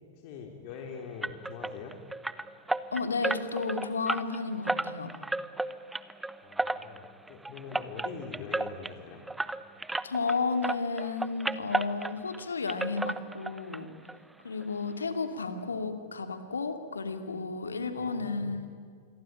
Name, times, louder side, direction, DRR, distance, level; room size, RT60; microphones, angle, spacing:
voice 1, 0.1-2.0 6.4-9.2 17.9-18.6, left 5 dB, 50° left, 3 dB, 3.7 m, -43 dB
bamboo wind chimes, 1.2-10.4 10.6-12.4 12.7-13.8 14.1-14.2 14.6-14.7 15.0-15.1, right 2 dB, 5° right, 1.0 m, -33 dB
voice 2, 2.9-5.1 10.0-13.9 14.4-18.8, left 4 dB, 80° left, 8 dB, 2.8 m, -32 dB
27.5 x 23.0 x 9.2 m, 2.1 s
figure-of-eight pair, 100°, 0 cm